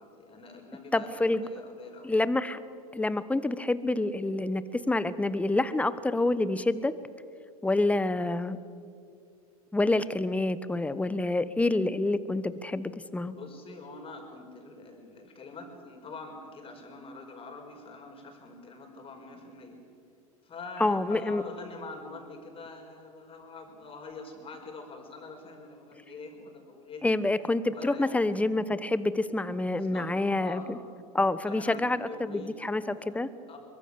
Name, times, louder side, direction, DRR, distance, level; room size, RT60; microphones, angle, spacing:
voice 1, 0.0-2.1 13.3-19.8 20.4-27.0 27.7-28.3 29.7-30.1 30.4-30.7 31.5-33.2 33.5-33.6, left 3 dB, 30° left, 3 dB, 5.4 m, -45 dB
voice 2, 0.9-1.5 2.0-2.6 2.9-6.9 7.6-8.6 9.7-13.3 20.8-21.4 27.0-30.8 31.1-33.3, left 2 dB, 5° left, 15 dB, 1.0 m, -27 dB
23.0 x 22.0 x 6.9 m, 2.4 s
hypercardioid pair, 95°, 19 cm